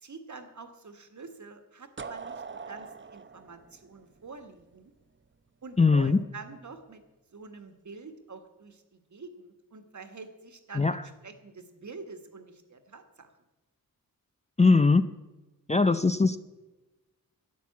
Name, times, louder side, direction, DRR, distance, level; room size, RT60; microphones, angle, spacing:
voice 1, 0.0-4.9 5.6-7.0 7.3-13.3, right 4 dB, 55° right, 7 dB, 1.7 m, -47 dB
sound 1, 2.0-4.8, right 5 dB, 35° right, 0.7 m, -42 dB
voice 2, 5.8-6.2 10.8-11.0 14.6-15.0 15.7-16.4, left 4 dB, 20° left, 11 dB, 0.5 m, -21 dB
11.5 x 10.5 x 8.4 m, 1.1 s
wide cardioid pair, 115°, 35 cm